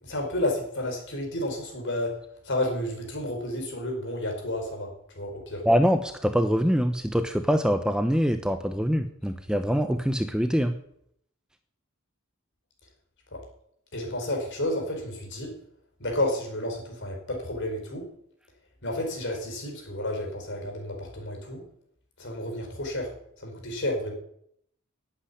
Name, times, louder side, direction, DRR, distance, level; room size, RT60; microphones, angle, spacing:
voice 1, 0.0-2.2 2.4-5.7 13.3-13.4 13.9-15.5 16.0-18.0 18.8-21.6 22.2-23.1 23.4-24.1, left 1 dB, 55° left, 2 dB, 4.9 m, -31 dB
voice 2, 5.7-10.7, equal, 5° right, 8 dB, 0.7 m, -24 dB
11.5 x 8.7 x 10.0 m, 0.71 s
head